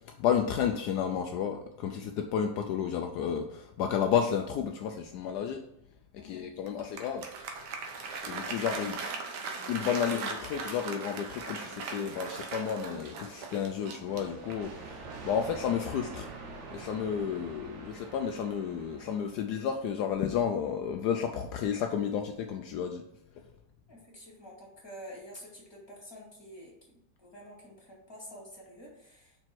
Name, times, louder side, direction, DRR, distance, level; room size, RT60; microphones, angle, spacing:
voice 1, 0.2-5.6 6.2-7.3 8.3-9.0 9.7-16.3 16.7-23.0, left 8 dB, 75° left, 5 dB, 1.1 m, -31 dB
voice 2, 6.2-6.8 8.6-9.0 9.3-9.4 23.9-29.4, equal, 15° left, -3 dB, 2.2 m, -49 dB
Applause, 6.7-14.8, right 4 dB, 80° right, 1.5 m, -39 dB
sound 1, 14.0-19.6, right 4 dB, 50° right, 1.1 m, -45 dB
5.3 x 4.5 x 6.0 m, 0.80 s
omnidirectional pair, 1.8 m